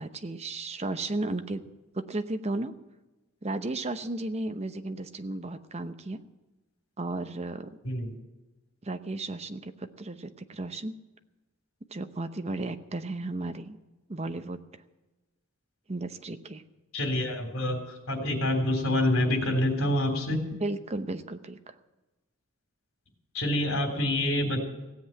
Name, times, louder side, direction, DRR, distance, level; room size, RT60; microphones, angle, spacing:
voice 1, 0.0-1.6 1.9-2.7 3.4-6.2 7.0-7.7 8.8-10.9 11.9-13.8 14.1-14.6 15.9-16.6 20.6-21.7, right 2 dB, 30° right, 8 dB, 0.8 m, -34 dB
voice 2, 16.9-20.4 23.3-24.6, left 1 dB, 70° left, 3 dB, 3.5 m, -27 dB
17.0 x 7.9 x 8.8 m, 1.1 s
head